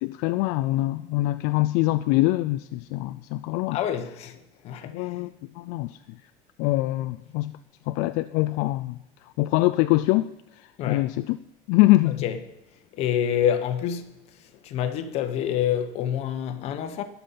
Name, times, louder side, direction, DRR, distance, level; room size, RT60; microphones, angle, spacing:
voice 1, 0.0-3.8 4.9-5.3 5.6-6.0 6.6-7.6 7.9-8.9 9.4-10.3 10.9-11.4 11.7-12.2, left 18 dB, 70° left, 0.4 m, -23 dB
voice 2, 3.7-5.1 10.8-11.1 12.1-12.4 12.9-14.1 14.6-17.0, left 9 dB, 45° left, 1.1 m, -27 dB
19.0 x 7.1 x 5.7 m
cardioid pair, 175°, 15 cm